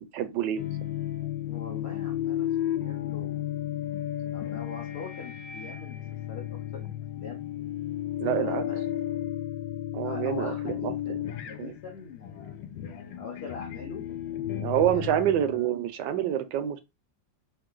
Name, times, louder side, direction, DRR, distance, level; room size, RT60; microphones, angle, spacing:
voice 1, 0.1-0.6 8.2-8.6 9.9-11.2 11.6-11.7 14.6-16.8, right 10 dB, 75° right, 1.2 m, -27 dB
sound 1, 0.6-15.7, left 12 dB, 90° left, 1.3 m, -33 dB
voice 2, 1.4-3.5 4.3-6.0 6.3-6.4 6.7-7.4 8.4-8.8 10.0-15.7, left 5 dB, 65° left, 0.6 m, -43 dB
3.2 x 2.6 x 3.8 m
omnidirectional pair, 2.0 m